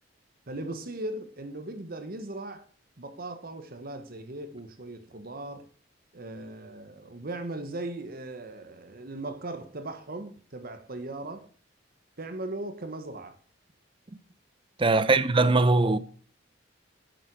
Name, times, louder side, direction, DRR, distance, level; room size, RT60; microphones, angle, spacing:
voice 1, 0.5-2.6 3.0-5.7 6.1-11.5 12.2-13.4 14.8-15.2, right 2 dB, 55° right, 1.4 m, -38 dB
voice 2, 14.8-16.0, right 3 dB, 30° right, 0.6 m, -21 dB
8.8 x 7.8 x 6.2 m
head